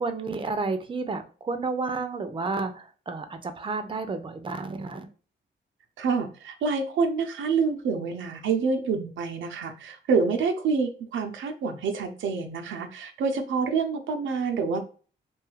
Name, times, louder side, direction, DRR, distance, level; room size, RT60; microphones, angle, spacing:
voice 1, 0.0-5.0, right 3 dB, 25° right, 8 dB, 0.5 m, -31 dB
voice 2, 6.0-14.8, right 5 dB, 80° right, 5 dB, 0.5 m, -27 dB
2.6 x 2.3 x 3.1 m, 0.39 s
cardioid pair, 60°, 20 cm